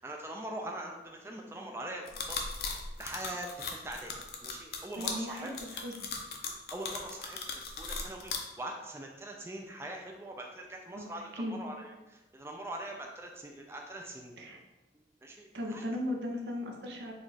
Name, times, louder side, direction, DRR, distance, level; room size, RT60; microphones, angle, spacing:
voice 1, 0.0-4.1 4.4-5.5 6.7-14.4 14.9-15.8, right 1 dB, 15° right, 1 dB, 0.3 m, -43 dB
sound 1, 2.1-8.4, left 5 dB, 60° left, 0.6 m, -37 dB
voice 2, 5.0-5.5 5.8-5.9 10.9-11.6 14.4-14.6 15.5-17.1, left 1 dB, 80° right, 1 dB, 0.7 m, -37 dB
4.9 x 2.3 x 4.1 m, 1.1 s
head